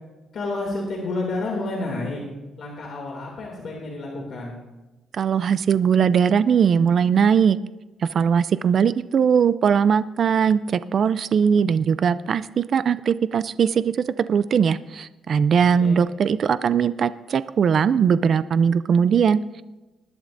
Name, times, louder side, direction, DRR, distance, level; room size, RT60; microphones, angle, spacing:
voice 1, 0.3-2.2 2.6-4.6 15.7-16.0, left 2 dB, 55° left, -2 dB, 2.5 m, -30 dB
voice 2, 5.1-7.6 8.0-19.6, right 7 dB, 50° right, 15 dB, 0.3 m, -20 dB
20.0 x 11.5 x 2.6 m, 1.1 s
cardioid pair, 135°, 0 cm